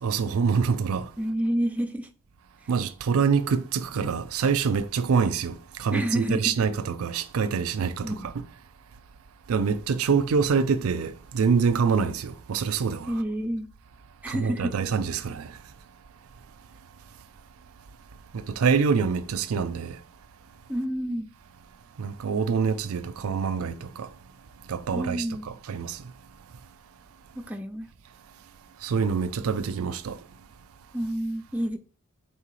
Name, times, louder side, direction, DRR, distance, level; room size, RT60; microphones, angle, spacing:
voice 1, 0.0-1.1 2.7-8.2 9.5-13.1 14.3-15.5 18.3-20.0 22.0-24.1 24.7-26.0 28.8-30.2, right 5 dB, 70° right, 0.4 m, -25 dB
voice 2, 1.2-2.1 5.9-6.5 8.0-8.3 13.1-13.7 14.2-14.8 20.7-21.3 24.9-25.5 27.4-27.9 30.9-31.8, equal, 5° right, 0.3 m, -29 dB
4.4 x 3.7 x 3.1 m
head